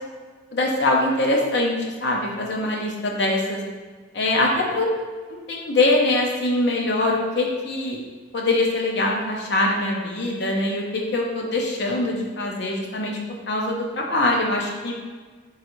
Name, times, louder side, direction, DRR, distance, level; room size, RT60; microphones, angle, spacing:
voice 1, 0.5-1.7 2.0-3.6 4.1-4.9 5.3-8.0 8.3-13.2 13.5-14.9, left 2 dB, 60° left, -1 dB, 0.6 m, -23 dB
3.8 x 3.2 x 3.1 m, 1.4 s
head